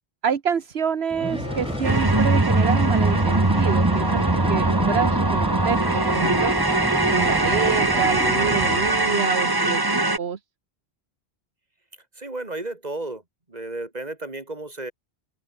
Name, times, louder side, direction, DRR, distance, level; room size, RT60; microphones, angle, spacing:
voice 1, 0.2-6.5 7.1-10.4, right 7 dB, 75° right, 1.4 m, -27 dB
sound 1, 1.1-9.1, equal, 5° right, 2.0 m, -30 dB
sound 2, 1.2-4.4, left 1 dB, 30° left, 3.3 m, -39 dB
Experimental Soundscape, 1.8-10.2, right 2 dB, 20° right, 1.5 m, -21 dB
voice 2, 12.1-13.2 13.5-14.9, right 2 dB, 40° right, 3.4 m, -33 dB
open air
omnidirectional pair, 1.1 m